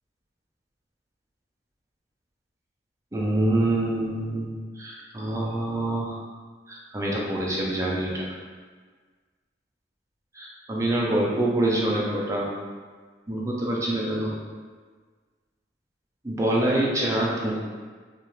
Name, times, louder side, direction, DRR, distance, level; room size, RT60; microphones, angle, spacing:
voice 1, 3.1-4.5 4.8-6.2 6.7-8.3 10.3-12.5 13.3-14.4 16.2-17.6, right 1 dB, 15° right, -4 dB, 0.4 m, -25 dB
2.8 x 2.4 x 3.1 m, 1.5 s
head